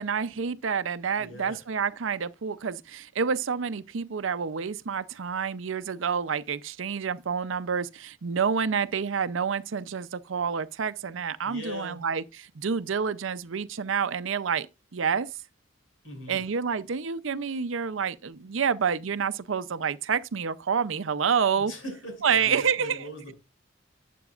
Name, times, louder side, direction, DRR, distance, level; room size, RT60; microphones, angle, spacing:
voice 1, 0.0-14.7 14.9-15.3 16.3-21.7 22.2-23.1, right 6 dB, 75° right, 0.6 m, -28 dB
voice 2, 1.2-1.6 11.4-12.0 16.0-16.5 21.6-23.3, left 1 dB, 80° left, 6.5 m, -40 dB
12.0 x 8.5 x 2.4 m
head